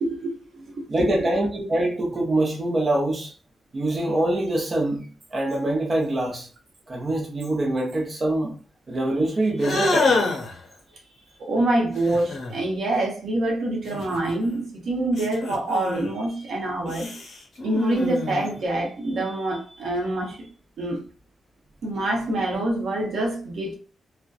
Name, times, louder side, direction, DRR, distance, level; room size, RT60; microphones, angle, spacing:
voice 1, 0.0-1.3 11.4-17.1 17.6-20.5 20.8-21.0 21.8-23.7, right 1 dB, 70° right, 0.8 m, -26 dB
voice 2, 0.9-3.3 3.7-6.5 6.9-8.5 8.9-10.3, right 1 dB, 35° right, 0.6 m, -24 dB
sound 1, 9.6-10.6 12.0-12.6 13.9-14.6 15.1-16.1 16.9-18.6, left 3 dB, 65° left, 0.8 m, -27 dB
2.5 x 2.1 x 2.3 m
wide cardioid pair, 125°, 0 cm